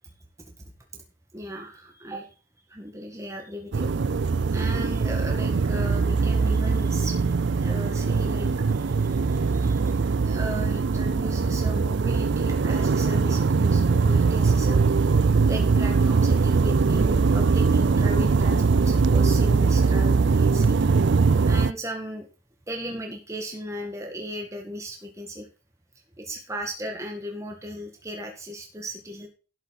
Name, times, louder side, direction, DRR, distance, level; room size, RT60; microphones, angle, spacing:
voice 1, 1.3-2.3 2.7-3.9 4.5-7.2 7.6-9.8 10.3-20.8 21.4-22.3 22.7-25.5 26.2-29.3, equal, 15° right, 2 dB, 1.8 m, -36 dB
sound 1, 3.7-21.7, right 4 dB, 55° right, 0.4 m, -21 dB
12.5 x 8.1 x 4.2 m, 0.34 s
head